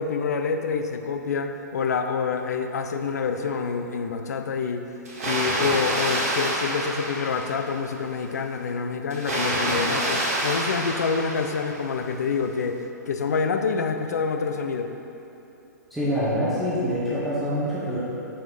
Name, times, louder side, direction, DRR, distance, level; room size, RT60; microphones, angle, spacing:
voice 1, 0.0-4.9 5.2-14.9, left 5 dB, 60° left, 6 dB, 0.5 m, -27 dB
Water, 5.1-7.9 9.1-11.9, right 1 dB, 50° right, 1.5 m, -27 dB
voice 2, 15.9-18.0, equal, ahead, -12 dB, 1.0 m, -25 dB
6.3 x 4.5 x 3.8 m, 2.9 s
figure-of-eight pair, 115°, 10 cm